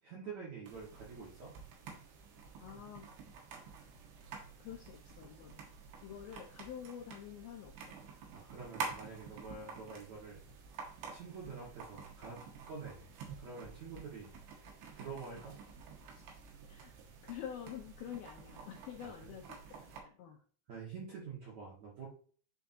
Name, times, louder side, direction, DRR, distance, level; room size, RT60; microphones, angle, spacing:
voice 1, 0.0-1.5 8.3-10.4 10.8-12.4 12.7-13.1 13.4-14.3 14.6-15.6 19.0-19.3 19.7-19.8 20.7-22.1, right 5 dB, 55° right, -4 dB, 2.2 m, -47 dB
sound 1, 0.7-20.0, right 5 dB, 70° right, 3.4 m, -49 dB
voice 2, 2.6-3.1 3.7-4.0 4.6-5.6 6.0-7.9 16.3-16.4 16.7-16.9 17.2-19.6 19.9-20.4, left 9 dB, 80° left, 1 dB, 2.2 m, -47 dB
10.0 x 4.6 x 2.7 m, 0.43 s
omnidirectional pair, 5.4 m